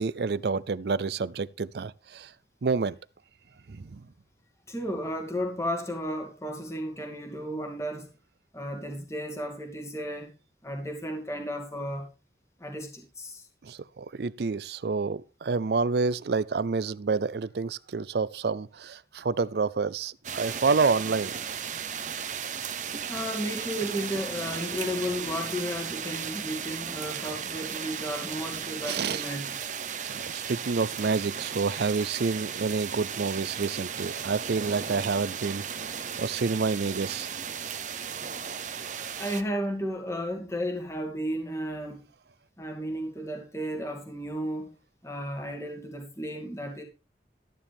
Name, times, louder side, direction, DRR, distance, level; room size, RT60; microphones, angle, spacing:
voice 1, 0.0-2.3 2.6-3.0 3.7-4.0 13.6-21.3 28.8-29.2 30.1-35.6 36.2-37.3, right 4 dB, 65° right, 0.5 m, -28 dB
voice 2, 4.7-8.1 8.5-10.3 10.6-12.1 12.6-13.5 23.1-29.6 39.2-42.0 42.6-44.7 45.0-46.8, equal, 15° left, 2.3 m, -33 dB
sound 1, 20.2-39.4, right 7 dB, 45° right, 1.0 m, -35 dB
13.5 x 10.0 x 3.5 m
head